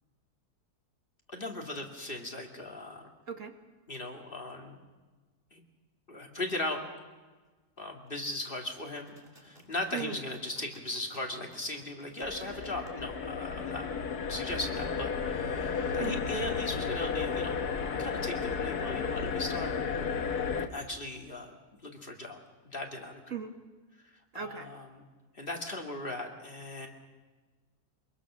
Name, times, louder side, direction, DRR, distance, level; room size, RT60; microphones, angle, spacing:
voice 1, 1.3-3.1 3.9-4.8 5.5-5.6 6.1-6.8 7.8-9.1 9.4-13.9 14.3-17.6 18.0-19.7 20.7-21.5 21.8-22.4 22.7-23.2 24.0-25.0 25.3-26.9, left 2 dB, 35° left, 2 dB, 2.4 m, -38 dB
sound 1, 8.8-12.9, right 1 dB, 35° right, 3.1 m, -57 dB
sound 2, 12.2-20.7, left 6 dB, 80° left, 1.7 m, -33 dB
voice 2, 24.3-24.7, right 7 dB, 55° right, 6 dB, 1.7 m, -37 dB
24.0 x 22.0 x 6.2 m, 1.3 s
omnidirectional pair, 1.6 m